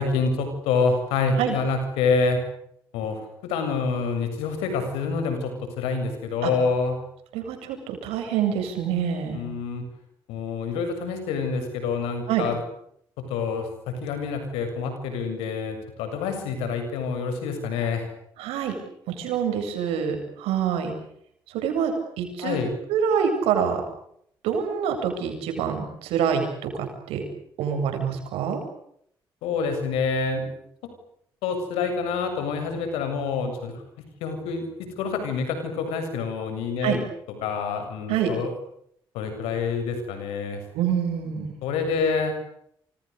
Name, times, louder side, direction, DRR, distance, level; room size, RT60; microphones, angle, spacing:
voice 1, 0.0-2.4 2.9-7.0 9.3-9.8 10.3-12.6 13.2-18.1 22.4-22.7 29.4-30.5 31.4-33.7 34.2-37.0 37.4-38.5 39.1-40.6 41.6-42.3, left 4 dB, 90° left, 7 dB, 7.2 m, -27 dB
voice 2, 7.3-9.4 12.3-12.5 18.4-18.7 19.1-20.9 21.5-22.6 22.9-23.8 24.4-27.2 27.6-28.6 36.8-37.0 38.1-38.3 40.7-41.5, right 8 dB, 90° right, 4 dB, 7.9 m, -26 dB
28.5 x 28.5 x 6.9 m, 0.71 s
supercardioid pair, 55°, 10 cm